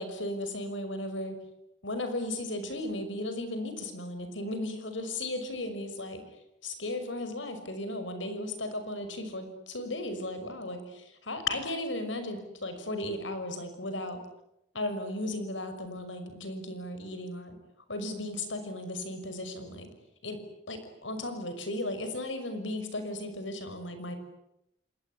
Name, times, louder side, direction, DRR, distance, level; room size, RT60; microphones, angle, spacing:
voice 1, 0.0-1.4 1.8-6.2 6.6-14.2 14.7-17.6 17.9-19.9 20.2-20.4 20.7-24.2, left 1 dB, 90° left, 9 dB, 5.9 m, -35 dB
28.0 x 21.0 x 9.7 m, 0.84 s
head